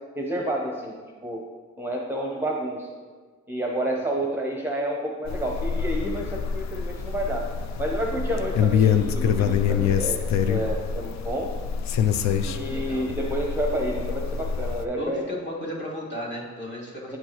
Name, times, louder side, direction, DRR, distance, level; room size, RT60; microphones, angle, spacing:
voice 1, 0.2-1.0 1.2-1.4 1.8-2.9 3.5-7.5 7.8-11.5 12.4-15.2, right 1 dB, 5° right, -1 dB, 0.8 m, -29 dB
sound 1, 5.3-14.8, left 7 dB, 65° left, 0.5 m, -25 dB
voice 2, 12.6-13.1 14.9-17.2, equal, 40° left, -5 dB, 1.9 m, -34 dB
8.9 x 4.4 x 3.0 m, 1.5 s
cardioid pair, 90°, 30 cm